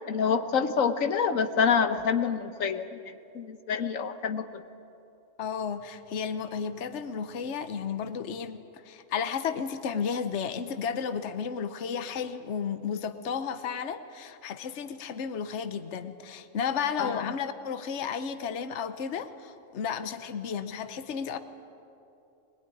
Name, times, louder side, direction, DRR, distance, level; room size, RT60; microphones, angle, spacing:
voice 1, 0.1-2.9 3.3-4.6 17.0-17.2, left 6 dB, 85° left, 9 dB, 1.4 m, -27 dB
voice 2, 5.4-21.4, left 6 dB, 65° left, 10 dB, 1.2 m, -33 dB
22.0 x 21.0 x 9.9 m, 2.8 s
omnidirectional pair, 1.3 m